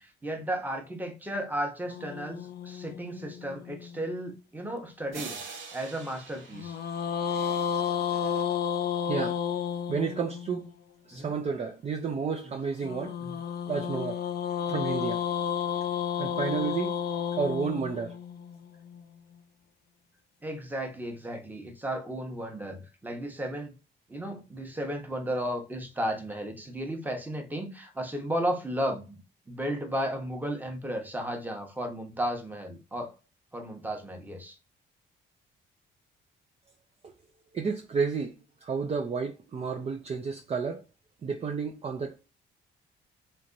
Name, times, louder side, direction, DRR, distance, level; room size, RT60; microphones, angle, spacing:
voice 1, 0.0-5.4 5.7-6.8 11.1-11.4 12.4-12.5 13.2-13.4 14.7-14.8 20.4-23.7 24.1-33.1 33.5-34.6, equal, 10° right, 0.9 m, -34 dB
sound 1, 1.9-4.3 6.5-10.7 12.8-19.0, left 8 dB, 55° left, 0.5 m, -32 dB
sound 2, 5.1-7.8, right 5 dB, 80° right, 0.9 m, -44 dB
voice 2, 9.1-9.4 9.9-10.7 11.1-13.2 13.7-14.2 14.7-15.2 16.2-16.9 17.3-18.2 37.5-40.8 41.2-42.2, right 5 dB, 30° right, 0.5 m, -31 dB
3.2 x 2.9 x 2.6 m
cardioid pair, 90°, 20 cm